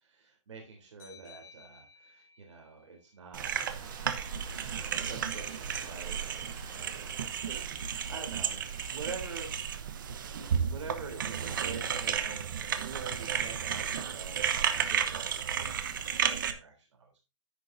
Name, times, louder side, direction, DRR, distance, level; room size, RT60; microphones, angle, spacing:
voice 1, 0.0-3.5 3.9-4.4 4.8-9.8 10.1-17.2, right 4 dB, 65° right, 2 dB, 3.6 m, -46 dB
sound 1, 1.0-4.3, left 5 dB, 20° left, 5.3 m, -58 dB
sound 2, 3.3-16.5, right 8 dB, 40° right, 1.0 m, -33 dB
Domestic sounds home sounds, 3.4-16.5, right 5 dB, 20° right, 1.7 m, -53 dB
10.0 x 9.6 x 2.7 m, 0.29 s
hypercardioid pair, 175°, 16 cm